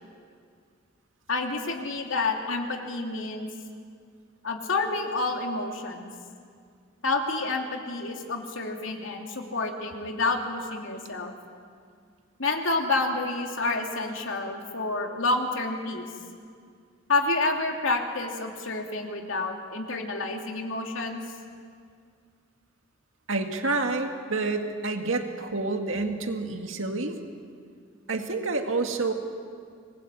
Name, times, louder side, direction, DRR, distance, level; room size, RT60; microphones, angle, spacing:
voice 1, 1.3-3.5 4.4-6.1 7.0-11.3 12.4-16.0 17.1-21.2, left 3 dB, 75° left, 2 dB, 2.9 m, -29 dB
voice 2, 23.3-27.2 28.1-29.1, right 3 dB, 80° right, 4 dB, 2.0 m, -28 dB
26.0 x 20.5 x 8.4 m, 2.2 s
head